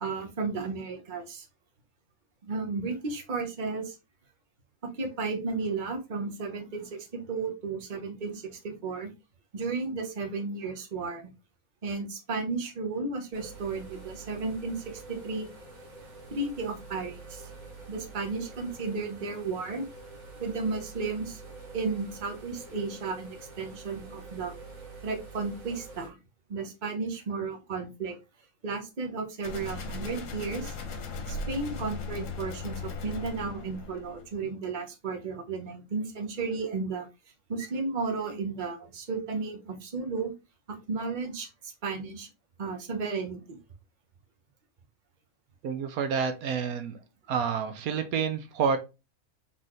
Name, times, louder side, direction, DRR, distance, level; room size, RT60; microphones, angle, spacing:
voice 1, 0.0-1.5 2.4-4.0 4.8-9.1 9.5-11.2 11.8-15.5 16.3-17.5 17.9-19.8 20.4-21.4 21.7-24.5 25.0-26.2 26.5-28.2 28.6-30.7 31.3-37.1 37.5-40.3 40.7-42.3 42.6-43.6, right 4 dB, 35° right, 3 dB, 1.0 m, -33 dB
sound 1, 13.3-26.1, right 3 dB, 65° right, 2.2 m, -46 dB
sound 2, 29.4-34.3, left 3 dB, 65° left, 1.2 m, -37 dB
voice 2, 45.6-47.0 47.3-48.8, right 6 dB, 85° right, 8 dB, 1.2 m, -28 dB
4.0 x 3.9 x 3.1 m, 0.27 s
omnidirectional pair, 1.5 m